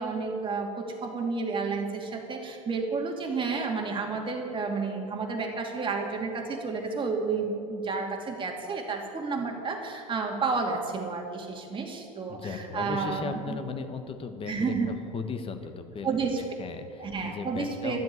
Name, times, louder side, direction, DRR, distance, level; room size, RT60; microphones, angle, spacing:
voice 1, 0.0-13.6 14.5-14.9 16.0-16.4 17.0-18.0, right 4 dB, 25° right, 2 dB, 2.5 m, -31 dB
voice 2, 12.3-18.0, left 5 dB, 30° left, 8 dB, 1.4 m, -37 dB
12.5 x 7.7 x 9.6 m, 2.5 s
hypercardioid pair, 85°, 19 cm